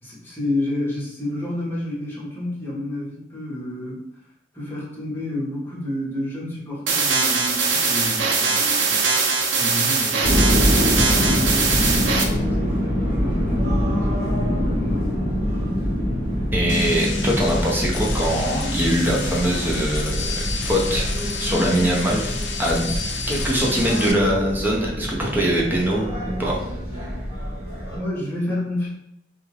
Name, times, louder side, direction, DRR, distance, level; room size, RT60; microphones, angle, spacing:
voice 1, 0.0-4.0 4.5-9.1 9.5-10.4 10.8-15.3 27.9-28.9, left 1 dB, 10° left, -7 dB, 1.1 m, -30 dB
sound 1, 6.9-12.2, right 4 dB, 85° right, 0.5 m, -21 dB
sound 2, 10.2-28.0, equal, 35° right, 1.3 m, -25 dB
voice 2, 16.5-21.1 21.4-22.9 23.3-26.6, right 1 dB, 10° right, -3 dB, 0.6 m, -23 dB
sound 3, 16.7-24.1, left 4 dB, 85° left, 0.4 m, -31 dB
2.5 x 2.3 x 3.2 m, 0.80 s
head